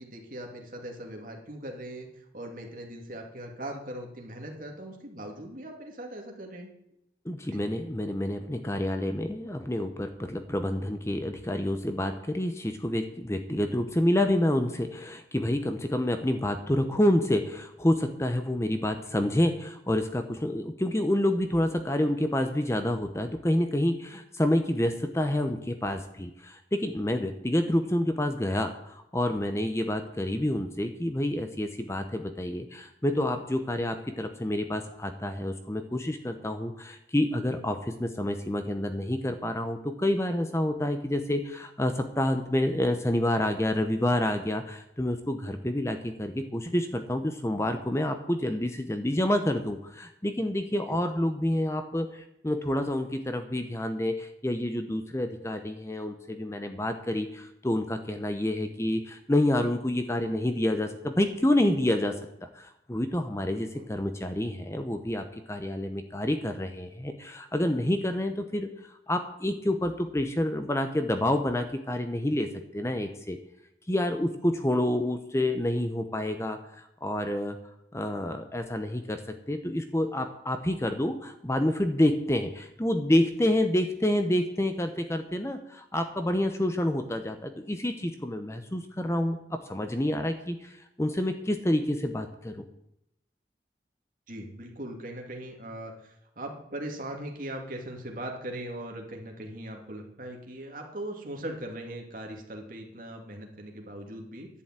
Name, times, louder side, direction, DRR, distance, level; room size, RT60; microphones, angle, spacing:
voice 1, 0.0-2.1 2.3-6.7 7.5-7.6 63.5-63.9 94.3-104.5, right 1 dB, 50° right, 2 dB, 2.4 m, -40 dB
voice 2, 7.2-73.4 73.9-77.6 77.9-92.6, left 1 dB, 15° left, 7 dB, 0.8 m, -28 dB
11.0 x 7.0 x 9.0 m, 0.79 s
head